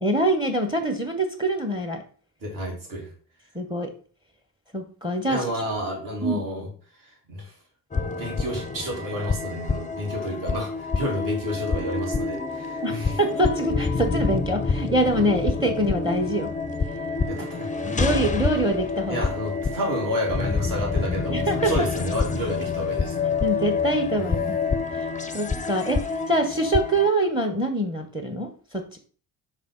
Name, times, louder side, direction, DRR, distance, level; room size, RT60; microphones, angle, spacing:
voice 1, 0.0-2.0 3.5-3.9 4.7-5.4 6.2-6.4 12.8-16.5 17.4-17.5 17.8-19.3 21.3-21.9 23.4-24.6 25.0-25.1 25.3-29.0, right 1 dB, 10° right, 6 dB, 1.3 m, -25 dB
voice 2, 2.4-3.1 5.2-6.7 7.0-7.5 8.0-13.2 17.3-17.9 19.1-23.3, equal, 40° right, -2 dB, 2.8 m, -30 dB
sound 1, 7.9-27.1, left 4 dB, 15° left, 0.6 m, -27 dB
5.4 x 5.1 x 4.0 m, 0.42 s
hypercardioid pair, 45°, 48 cm